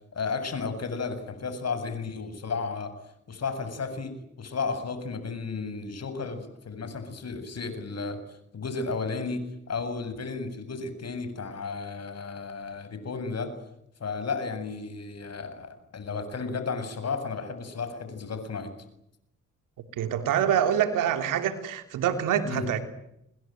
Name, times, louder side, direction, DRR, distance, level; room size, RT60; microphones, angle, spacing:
voice 1, 0.1-2.9 3.3-13.5 14.0-18.7 22.4-22.7, left 4 dB, 55° left, 10 dB, 7.8 m, -33 dB
voice 2, 20.0-22.9, right 9 dB, 90° right, 8 dB, 3.2 m, -26 dB
28.0 x 21.0 x 9.3 m, 0.80 s
cardioid pair, 60°, 31 cm